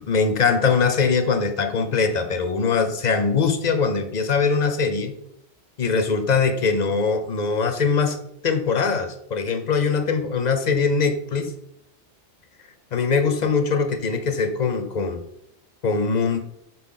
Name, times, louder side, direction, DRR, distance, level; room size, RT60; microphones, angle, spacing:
voice 1, 0.0-5.2 5.8-8.2 8.4-11.5 12.9-15.2 15.8-16.4, left 5 dB, 45° left, 6 dB, 0.7 m, -22 dB
6.0 x 4.5 x 3.8 m, 0.76 s
omnidirectional pair, 1.2 m